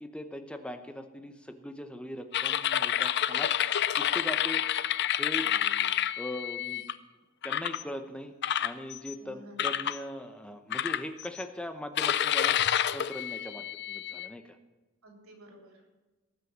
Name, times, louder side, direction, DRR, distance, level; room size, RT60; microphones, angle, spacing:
voice 1, 0.0-3.5 4.0-4.6 5.2-5.5 6.2-6.8 7.4-12.6 12.9-14.6, equal, 5° left, 7 dB, 0.8 m, -40 dB
sound 1, 2.3-6.9 7.4-7.8 8.4-9.1 9.6-10.0 10.7-11.4 12.0-14.3, left 10 dB, 50° left, 0.4 m, -29 dB
voice 2, 5.4-5.9 9.2-9.6 15.0-15.8, equal, 75° right, 1 dB, 3.6 m, -52 dB
19.0 x 6.5 x 7.3 m, 1.1 s
head